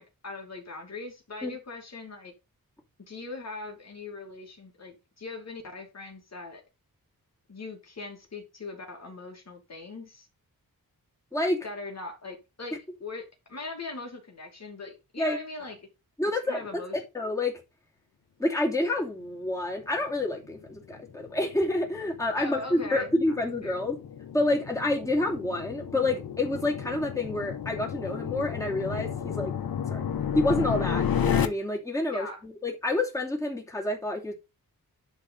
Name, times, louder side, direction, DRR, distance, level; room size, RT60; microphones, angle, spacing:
voice 1, 0.0-2.3 3.1-6.6 7.5-10.3 11.6-15.8 16.5-16.9 22.4-23.4 23.6-23.8 32.1-32.4, left 3 dB, 45° left, 2.6 m, -40 dB
voice 2, 11.3-11.7 15.2-15.4 16.2-17.6 18.4-24.0 24.3-29.5 29.9-30.1 30.3-34.3, left 2 dB, 10° left, 2.8 m, -28 dB
sound 1, 20.3-31.5, left 8 dB, 70° left, 1.1 m, -32 dB
10.5 x 3.8 x 5.5 m
wide cardioid pair, 135°, 37 cm